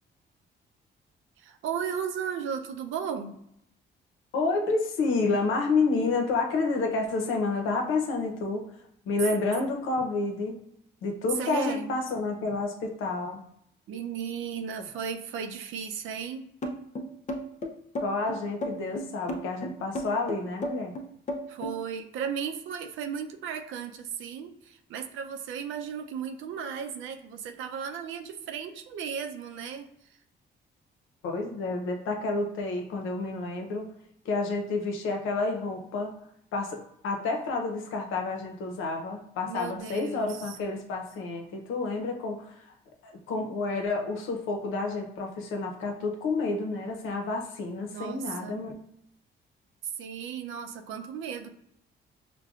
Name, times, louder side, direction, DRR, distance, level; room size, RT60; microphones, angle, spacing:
voice 1, 1.4-3.4 11.4-11.9 13.9-16.4 21.5-29.9 39.5-40.6 47.9-48.6 50.0-51.5, right 7 dB, 85° right, 6 dB, 0.5 m, -35 dB
voice 2, 4.3-8.7 9.1-10.5 11.0-13.4 18.0-20.9 31.2-33.9 34.2-36.1 36.5-42.6 43.0-48.7, left 3 dB, 90° left, 3 dB, 0.7 m, -29 dB
sound 1, 16.6-21.8, left 1 dB, 40° left, 0.6 m, -33 dB
5.7 x 2.2 x 2.4 m, 0.76 s
cardioid pair, 90°, 20 cm